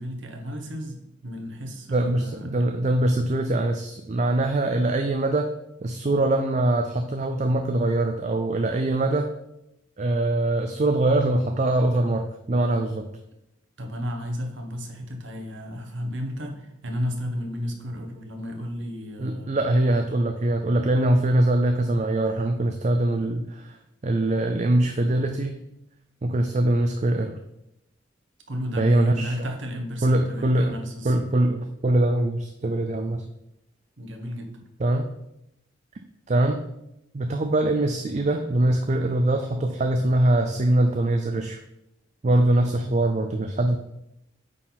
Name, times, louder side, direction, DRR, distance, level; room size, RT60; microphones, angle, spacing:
voice 1, 0.0-2.7 13.8-19.6 28.5-31.1 34.0-34.5, equal, 75° right, 3 dB, 1.3 m, -33 dB
voice 2, 1.9-5.5 5.8-9.3 10.0-13.1 19.2-23.8 24.0-25.6 26.2-27.4 28.8-29.4 30.0-30.7 31.0-33.3 34.8-35.1 36.3-36.6 37.1-41.6 42.2-43.8, right 1 dB, 35° right, 6 dB, 0.4 m, -23 dB
8.8 x 4.1 x 4.1 m, 0.84 s
head